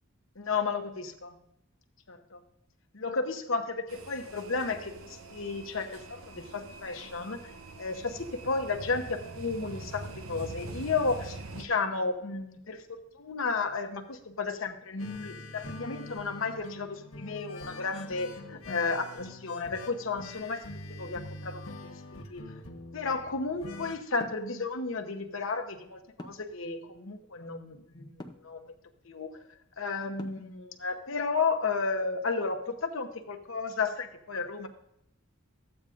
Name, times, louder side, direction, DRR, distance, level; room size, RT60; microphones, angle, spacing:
voice 1, 0.4-1.4 2.1-2.4 2.9-7.5 7.8-20.6 21.0-22.4 22.9-28.1 28.4-28.7 29.1-29.4 29.8-34.7, left 4 dB, 70° left, 5 dB, 0.9 m, -33 dB
sound 1, 3.9-11.7, right 3 dB, 80° right, 0.8 m, -44 dB
sound 2, 15.0-24.0, left 2 dB, 85° left, 1.3 m, -44 dB
sound 3, 24.2-24.5 26.2-26.6 28.2-28.5 30.2-30.6, left 1 dB, 20° left, 0.6 m, -44 dB
14.0 x 8.7 x 2.5 m, 0.79 s
head